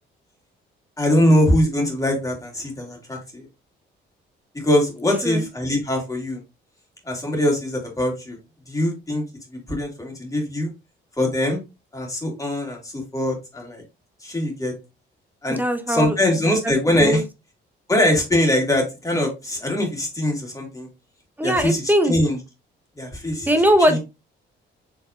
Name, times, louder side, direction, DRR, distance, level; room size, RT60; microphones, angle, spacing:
voice 1, 1.0-3.5 4.5-6.4 7.1-8.4 8.7-9.2 9.7-10.7 11.2-11.6 11.9-13.8 14.2-14.7 15.4-15.6 15.9-17.2 17.9-20.9 21.4-22.4 23.0-23.5 23.9-24.0, left 1 dB, 15° left, 1 dB, 2.1 m, -22 dB
voice 2, 15.5-16.2 16.6-16.7 17.0-17.2 21.4-22.2 23.5-24.0, equal, 10° right, 7 dB, 0.9 m, -20 dB
4.8 x 3.4 x 2.6 m, 0.26 s
cardioid pair, 90°, 20 cm